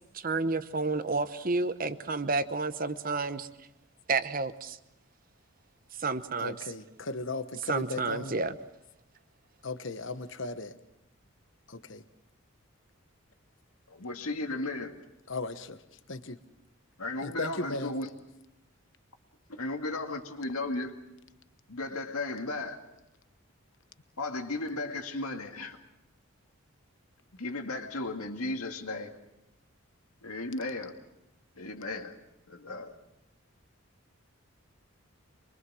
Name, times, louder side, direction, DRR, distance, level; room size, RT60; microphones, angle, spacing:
voice 1, 0.1-3.5 4.1-4.8 6.0-6.5 7.7-8.5, right 3 dB, 40° right, 12 dB, 0.9 m, -30 dB
voice 2, 6.4-8.4 9.6-10.8 11.7-12.0 15.3-15.8 16.1-16.4 17.2-17.9, left 3 dB, 60° left, 11 dB, 1.1 m, -36 dB
voice 3, 13.9-14.9 17.0-18.1 19.5-20.9 21.7-22.8 24.2-25.8 27.3-29.2 30.2-30.9 31.6-32.1 32.5-32.9, left 2 dB, 90° left, 4 dB, 2.3 m, -35 dB
24.5 x 23.0 x 6.3 m, 0.88 s
head